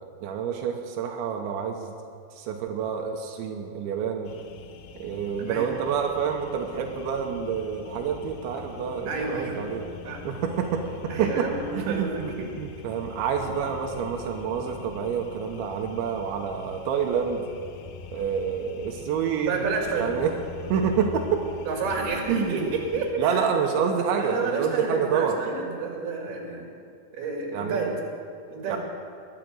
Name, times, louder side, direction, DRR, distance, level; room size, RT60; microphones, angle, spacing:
voice 1, 0.0-1.9 2.3-4.3 5.0-9.9 10.2-11.5 11.7-17.4 18.1-19.5 20.0-20.3 20.7-21.4 22.3-22.7 23.2-25.4 27.5-28.0 28.7-28.8, right 7 dB, 90° right, 2 dB, 3.4 m, -28 dB
sound 1, 4.3-23.1, left 7 dB, 90° left, 2.1 m, -43 dB
voice 2, 5.4-5.7 9.1-9.6 10.0-10.3 11.1-12.5 13.4-13.5 19.4-20.2 21.7-23.8 24.1-26.7 27.1-27.9 28.5-28.8, right 4 dB, 65° right, 0 dB, 4.1 m, -30 dB
21.0 x 8.5 x 7.7 m, 2.3 s
omnidirectional pair, 5.1 m